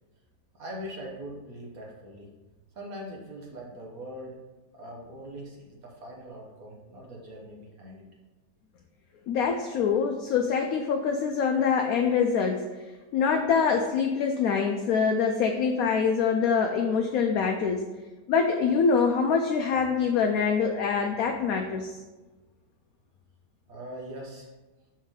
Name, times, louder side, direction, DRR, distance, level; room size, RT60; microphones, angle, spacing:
voice 1, 0.5-2.3 2.7-4.4 4.7-8.1 23.7-24.5, equal, 60° right, -1 dB, 1.5 m, -41 dB
voice 2, 9.3-12.7 13.1-17.8 18.3-22.0, left 6 dB, 70° left, 3 dB, 0.9 m, -25 dB
5.7 x 5.2 x 3.6 m, 1.2 s
omnidirectional pair, 1.8 m